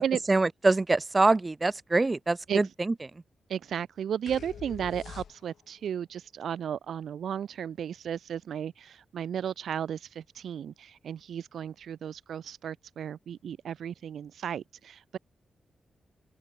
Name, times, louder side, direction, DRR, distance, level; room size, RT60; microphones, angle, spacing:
voice 1, 0.3-2.9, right 3 dB, 30° right, 1.0 m, -24 dB
voice 2, 3.5-15.2, right 8 dB, 80° right, 0.9 m, -34 dB
sound 1, 4.3-5.8, left 8 dB, 75° left, 1.2 m, -44 dB
open air
supercardioid pair, 50°, 0 cm